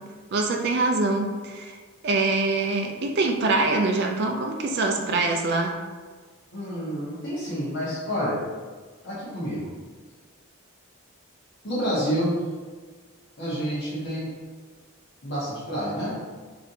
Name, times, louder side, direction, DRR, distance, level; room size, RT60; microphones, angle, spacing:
voice 1, 0.3-1.8 2.0-5.8, right 3 dB, 50° right, 3 dB, 0.4 m, -24 dB
voice 2, 6.5-8.4 9.0-9.7 11.6-12.5 13.4-14.3 15.2-16.1, equal, 50° left, -10 dB, 1.4 m, -28 dB
4.1 x 3.3 x 2.7 m, 1.5 s
head